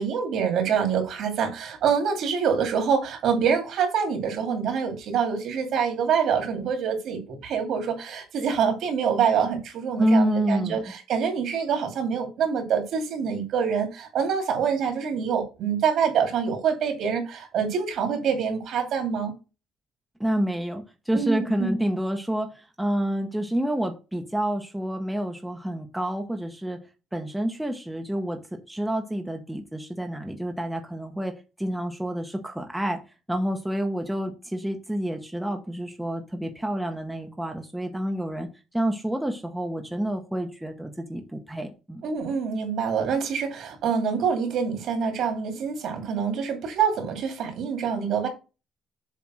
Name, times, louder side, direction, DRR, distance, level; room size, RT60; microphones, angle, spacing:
voice 1, 0.0-19.3 21.1-21.7 42.0-48.3, right 6 dB, 65° right, 4 dB, 2.6 m, -26 dB
voice 2, 10.0-10.8 20.2-26.8 27.1-33.0 33.3-38.5 38.7-42.0, right 1 dB, 5° right, 4 dB, 0.9 m, -28 dB
7.3 x 3.3 x 6.1 m, 0.30 s
cardioid pair, 130°, 0 cm